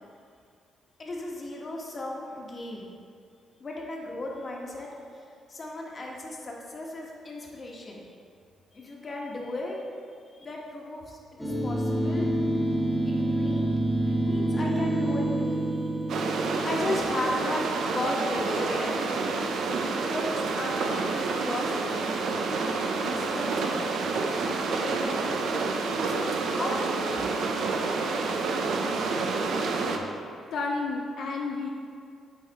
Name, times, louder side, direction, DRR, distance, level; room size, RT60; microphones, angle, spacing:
voice 1, 1.0-2.9 3.6-4.9 5.1-5.2 5.5-8.0 8.7-9.9 10.4-12.3 13.0-13.7 14.1-15.7 16.5-17.7 17.9-18.9 19.8-22.0 23.0-23.9 24.4-25.4 25.9-27.6, left 1 dB, 35° left, -2 dB, 1.2 m, -35 dB
sound 1, 11.4-18.0, right 1 dB, 5° left, 1.2 m, -27 dB
sound 2, 16.1-30.0, right 3 dB, 70° right, 0.6 m, -28 dB
voice 2, 30.5-31.7, left 3 dB, 70° left, 0 dB, 0.5 m, -31 dB
8.0 x 3.9 x 4.1 m, 2.3 s
cardioid pair, 90°, 0 cm